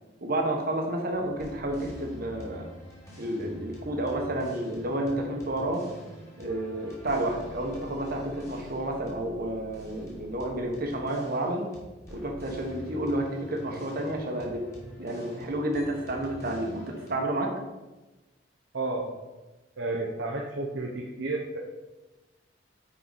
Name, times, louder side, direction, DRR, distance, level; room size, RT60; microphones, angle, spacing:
voice 1, 0.2-2.7 3.2-5.9 6.4-11.7 12.1-14.6 15.0-17.5, right 1 dB, 50° right, 2 dB, 1.3 m, -30 dB
sound 1, 1.1-17.1, equal, 15° left, 2.1 m, -46 dB
voice 2, 18.7-19.1 19.8-21.6, right 2 dB, 70° right, -1 dB, 0.8 m, -31 dB
9.6 x 4.6 x 4.1 m, 1.1 s
head